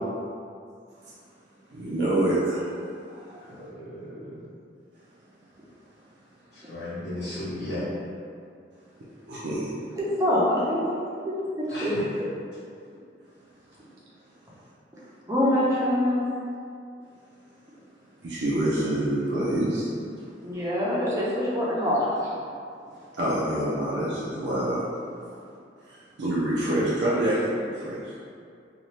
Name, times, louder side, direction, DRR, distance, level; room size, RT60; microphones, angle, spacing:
voice 1, 1.7-2.7 3.1-3.4 9.3-9.7 18.2-19.9 23.1-24.8 25.9-28.2, right 1 dB, 80° right, -7 dB, 0.5 m, -26 dB
voice 2, 3.7-4.4 6.7-7.8 11.7-12.0, left 1 dB, 75° left, -10 dB, 1.2 m, -35 dB
voice 3, 10.0-12.2 15.3-16.2 20.4-22.1, left 1 dB, 20° right, -7 dB, 0.6 m, -25 dB
2.7 x 2.3 x 3.1 m, 2.4 s
head